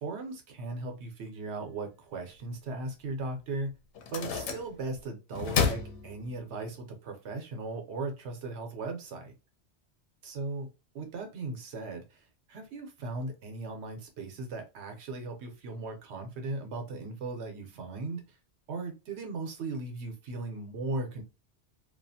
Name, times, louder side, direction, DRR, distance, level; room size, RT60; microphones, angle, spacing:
voice 1, 0.0-3.7 4.1-9.3 10.2-10.7 10.9-18.4 18.7-21.2, right 3 dB, 80° right, 1.0 m, -37 dB
sound 1, 3.2-3.3 3.9-5.0 5.3-6.7, left 6 dB, 90° left, 0.9 m, -31 dB
2.5 x 2.4 x 2.6 m
omnidirectional pair, 1.2 m